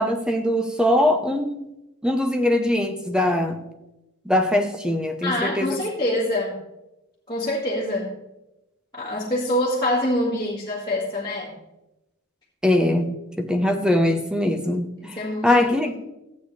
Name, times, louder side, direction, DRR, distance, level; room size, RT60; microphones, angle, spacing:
voice 1, 0.0-1.7 2.0-3.7 4.2-5.8 12.6-15.9, left 1 dB, 5° right, 5 dB, 0.8 m, -22 dB
voice 2, 5.2-6.6 7.3-8.1 8.9-11.5 15.0-15.6, left 1 dB, 20° left, -8 dB, 1.8 m, -25 dB
14.5 x 8.3 x 3.2 m, 0.92 s
head